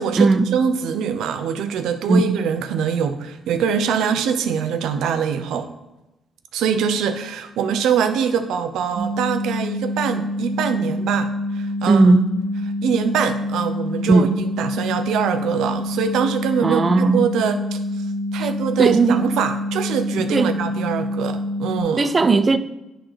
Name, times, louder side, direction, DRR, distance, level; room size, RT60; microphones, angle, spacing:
voice 1, 0.0-5.7 6.5-12.1 12.8-17.8 18.3-22.1, right 7 dB, 85° right, 0.7 m, -23 dB
sound 1, 9.0-21.8, left 1 dB, 65° right, 1.1 m, -26 dB
voice 2, 11.9-12.2 14.1-14.3 16.6-17.2 18.8-19.2 20.3-20.5 22.0-22.6, right 3 dB, 35° right, 0.5 m, -16 dB
10.0 x 3.8 x 4.9 m
cardioid pair, 90°, 0 cm